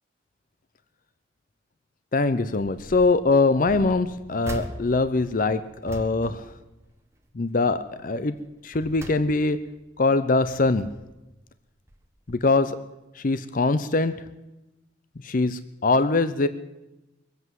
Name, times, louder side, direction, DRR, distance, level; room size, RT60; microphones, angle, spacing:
voice 1, 2.1-6.5 7.3-8.3 8.6-9.6 10.0-10.9 12.3-12.8 13.2-14.1 15.2-16.5, left 3 dB, 50° left, 12 dB, 0.6 m, -22 dB
sound 1, 2.6-3.2 3.6-7.3 7.7-8.0 8.5-9.7 10.2-11.2 11.9-12.0 12.3-12.4, right 1 dB, 15° right, 1.3 m, -41 dB
22.0 x 8.2 x 7.7 m, 0.99 s
head